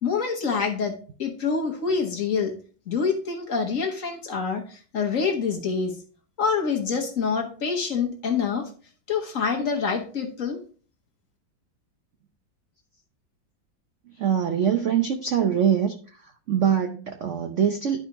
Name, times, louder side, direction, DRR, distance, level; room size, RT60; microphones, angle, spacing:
voice 1, 0.0-2.5 2.9-5.9 6.4-8.7 9.1-10.6, left 5 dB, 50° left, 2 dB, 1.2 m, -26 dB
voice 2, 14.2-15.9 16.5-18.0, right 8 dB, 70° right, 6 dB, 0.7 m, -23 dB
11.5 x 4.7 x 3.0 m, 0.41 s
omnidirectional pair, 2.1 m